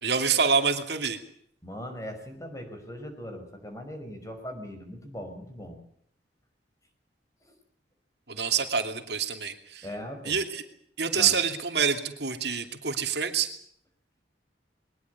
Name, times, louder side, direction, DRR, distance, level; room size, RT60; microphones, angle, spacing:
voice 1, 0.0-1.2 8.3-9.9 10.3-10.6 11.0-13.5, right 6 dB, 65° right, 6 dB, 2.7 m, -26 dB
voice 2, 1.6-5.8 7.4-7.5 9.8-10.4 11.1-11.3, equal, 20° left, 5 dB, 5.6 m, -39 dB
22.0 x 20.5 x 8.4 m, 0.65 s
head